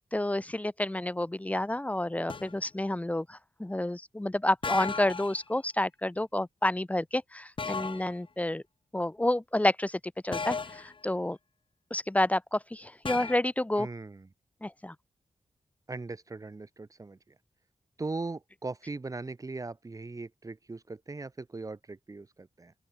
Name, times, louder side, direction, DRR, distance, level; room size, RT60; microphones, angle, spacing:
voice 1, 0.0-8.6 8.9-11.4 11.9-13.9 14.6-14.9, left 1 dB, 10° left, 2.2 m, -30 dB
sound 1, 2.3-2.6 4.6-5.4 7.6-8.1 10.3-10.9 13.1-13.4, left 4 dB, 45° left, 1.9 m, -35 dB
voice 2, 13.8-14.3 15.9-17.4 18.0-22.7, right 3 dB, 30° right, 1.8 m, -39 dB
open air
wide cardioid pair, 155°, 12 cm